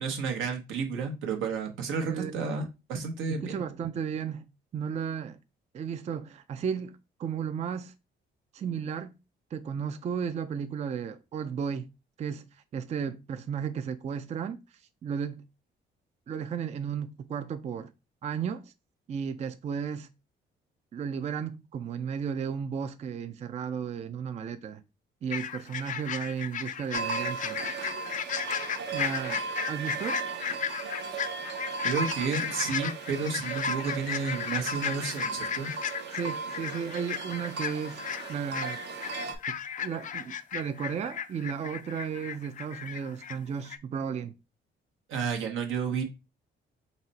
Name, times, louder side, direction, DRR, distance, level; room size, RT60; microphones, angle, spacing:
voice 1, 0.0-3.6 31.8-35.7 45.1-46.0, right 5 dB, 85° right, 1.0 m, -31 dB
voice 2, 2.1-2.5 3.3-4.4 4.7-5.4 5.7-7.9 8.5-9.1 9.5-11.9 12.2-12.5 12.7-14.6 15.0-15.4 16.3-17.9 18.2-18.7 19.1-20.1 20.9-24.8 25.2-27.6 28.9-30.2 36.1-38.0 38.3-38.8 39.5-44.3, right 7 dB, 35° right, 0.3 m, -34 dB
sound 1, 25.3-43.4 43.6-43.8, left 8 dB, 40° left, 0.4 m, -35 dB
sound 2, 26.9-39.4, right 4 dB, 60° right, 0.7 m, -36 dB
4.1 x 2.1 x 3.9 m
cardioid pair, 90°, 20 cm